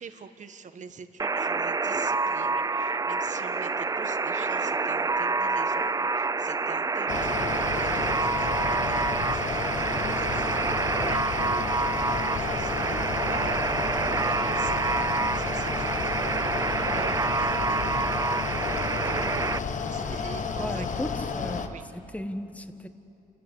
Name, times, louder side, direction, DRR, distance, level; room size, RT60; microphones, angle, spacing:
voice 1, 0.0-20.9 21.6-21.8, right 6 dB, 50° right, 9 dB, 1.4 m, -44 dB
Alarm, 1.2-19.6, right 4 dB, 20° right, 0.5 m, -27 dB
Mechanical fan, 7.1-21.7, left 5 dB, 55° left, 1.3 m, -32 dB
voice 2, 20.6-21.7 21.9-22.9, left 1 dB, 10° left, 9 dB, 1.4 m, -35 dB
28.5 x 14.5 x 9.9 m, 2.9 s
cardioid pair, 85°, 16 cm